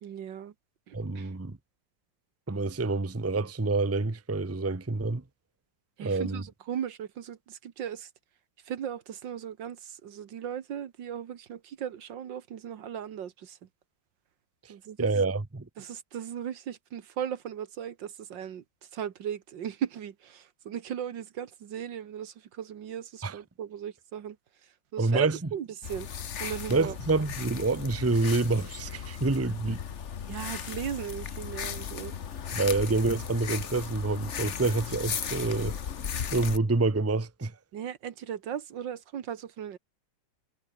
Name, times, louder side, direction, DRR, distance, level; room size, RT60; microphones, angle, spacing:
voice 1, 0.0-0.5 0.9-1.3 6.0-8.1 8.7-13.6 14.7-15.1 15.8-18.6 18.9-24.4 24.9-26.1 26.4-27.0 30.3-32.2 37.7-39.8, right 9 dB, 75° right, 2.0 m, -37 dB
voice 2, 0.9-1.6 2.5-5.2 6.0-6.4 14.6-15.7 23.2-23.4 25.0-25.4 26.7-29.8 32.5-35.8 36.3-37.6, right 3 dB, 10° right, 0.7 m, -27 dB
sound 1, 25.8-36.6, left 7 dB, 45° left, 1.2 m, -36 dB
omnidirectional pair, 2.0 m